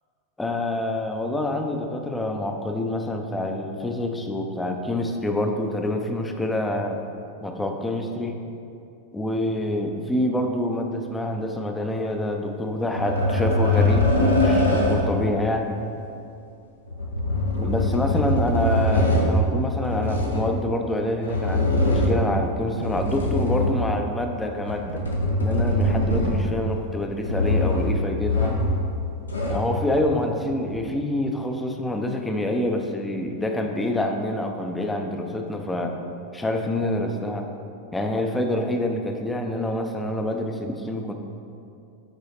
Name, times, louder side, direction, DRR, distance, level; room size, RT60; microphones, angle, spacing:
voice 1, 0.4-7.0 7.4-8.4 9.1-15.8 17.6-25.0 25.4-28.6 29.5-36.0 36.3-37.5 37.9-41.1, left 1 dB, 10° left, 3 dB, 0.5 m, -26 dB
sound 1, 12.9-15.2 16.9-19.3 19.8-20.5 21.2-22.3 22.7-24.0 24.6-26.6 27.2-27.9 28.3-28.8 29.1-29.7 30.7-30.8, left 1 dB, 75° left, 0.8 m, -22 dB
6.5 x 4.7 x 3.2 m, 2.5 s
figure-of-eight pair, 90°, 0 cm